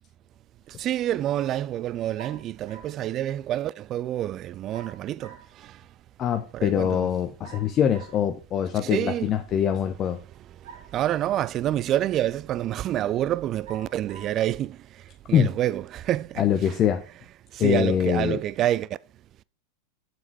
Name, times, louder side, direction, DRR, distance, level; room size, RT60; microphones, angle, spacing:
voice 1, 0.8-5.3 6.5-7.1 8.8-9.3 10.9-14.8 15.3-16.7 17.6-18.9, right 12 dB, 30° right, 0.3 m, -27 dB
sound 1, 2.1-3.0 4.7-5.5 7.4-8.2 10.6-11.5 12.2-12.3 13.6-14.4, right 6 dB, 60° right, 2.4 m, -47 dB
voice 2, 6.2-10.2 15.3-15.5 16.4-17.0 17.6-18.4, left 9 dB, 30° left, 0.7 m, -23 dB
7.8 x 7.2 x 4.7 m
figure-of-eight pair, 90°, 0 cm